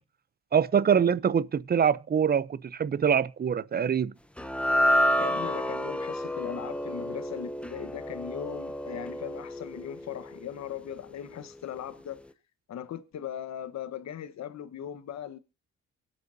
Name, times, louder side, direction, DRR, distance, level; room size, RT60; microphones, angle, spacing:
voice 1, 0.5-4.1, right 7 dB, 30° right, 0.6 m, -24 dB
sound 1, 4.4-10.8, equal, 5° left, 0.8 m, -29 dB
voice 2, 5.2-12.2 12.7-15.4, left 9 dB, 65° left, 1.3 m, -39 dB
24.0 x 8.3 x 2.7 m
cardioid pair, 90°, 30 cm